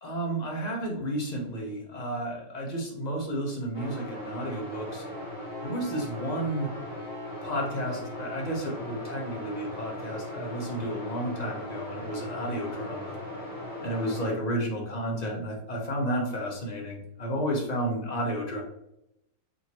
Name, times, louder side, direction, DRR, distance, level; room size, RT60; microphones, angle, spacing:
voice 1, 0.0-5.0 5.6-6.7 7.4-13.2 13.8-18.6, right 1 dB, 35° left, -1 dB, 0.7 m, -32 dB
sound 1, 3.7-14.3, left 1 dB, 85° left, 2.5 m, -38 dB
5.1 x 2.9 x 2.9 m, 0.82 s
omnidirectional pair, 1.8 m